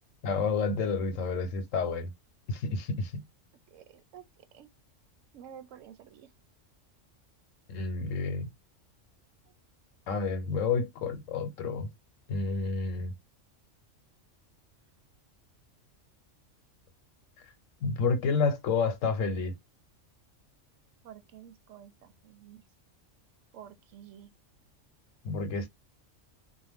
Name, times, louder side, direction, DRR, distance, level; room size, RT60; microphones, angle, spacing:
voice 1, 0.2-2.1 2.5-3.2 7.7-8.5 10.1-11.9 12.3-13.1 17.8-19.5 25.2-25.7, left 4 dB, 90° left, 1.1 m, -29 dB
voice 2, 5.3-6.3 21.0-21.9 22.2-22.6 23.5-24.3, right 9 dB, 80° right, 0.9 m, -49 dB
2.5 x 2.2 x 3.3 m
omnidirectional pair, 1.3 m